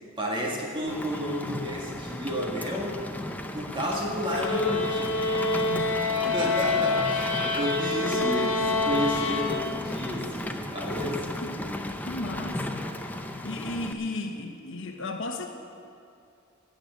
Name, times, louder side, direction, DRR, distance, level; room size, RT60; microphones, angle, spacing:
voice 1, 0.2-3.0 3.5-5.3 6.2-11.3, equal, 25° right, -2 dB, 1.9 m, -31 dB
Rain, 0.9-13.9, left 1 dB, 10° left, 0.7 m, -35 dB
sound 1, 4.3-10.0, left 3 dB, 85° left, 1.5 m, -27 dB
voice 2, 5.5-6.8 8.1-8.7 11.2-11.6 12.1-12.9 13.2-15.5, left 2 dB, 65° left, 4 dB, 1.1 m, -36 dB
14.0 x 8.1 x 9.4 m, 2.5 s
head